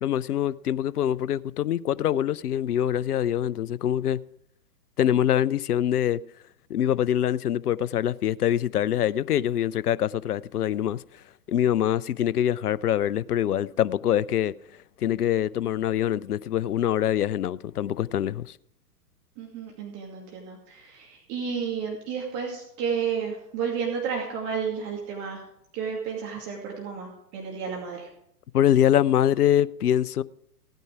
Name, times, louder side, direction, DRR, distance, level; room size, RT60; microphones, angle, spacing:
voice 1, 0.0-4.2 5.0-6.2 6.7-11.0 11.5-14.5 15.0-18.6 28.5-30.2, left 10 dB, 65° left, 0.6 m, -24 dB
voice 2, 19.4-25.4 25.7-28.1, right 6 dB, 30° right, 2.4 m, -32 dB
16.5 x 9.2 x 4.8 m
figure-of-eight pair, 120°, 49 cm